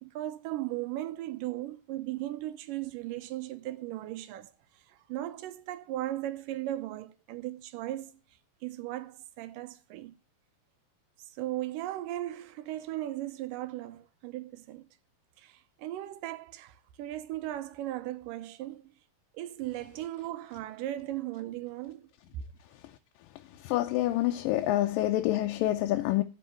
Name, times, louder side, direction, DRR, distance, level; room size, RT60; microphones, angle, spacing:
voice 1, 0.0-4.5 4.9-8.2 8.6-10.2 11.3-14.9 15.4-18.9 19.3-22.1, right 14 dB, 80° right, 2.4 m, -37 dB
voice 2, 23.6-26.2, left 15 dB, 90° left, 2.4 m, -27 dB
11.5 x 5.6 x 7.5 m
omnidirectional pair, 3.8 m